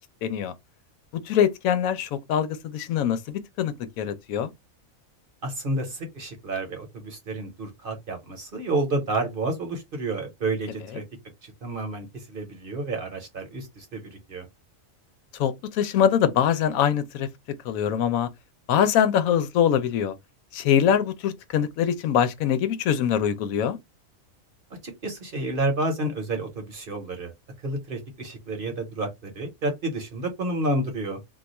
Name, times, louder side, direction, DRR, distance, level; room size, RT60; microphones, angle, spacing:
voice 1, 0.2-0.5 1.3-4.5 15.4-17.3 17.6-18.3 18.7-20.1 20.5-23.8, left 9 dB, 85° left, 1.0 m, -23 dB
voice 2, 5.4-11.0 11.4-14.5 24.8-27.3 27.6-31.2, right 2 dB, 45° right, 0.9 m, -30 dB
2.4 x 2.3 x 4.0 m
omnidirectional pair, 1.4 m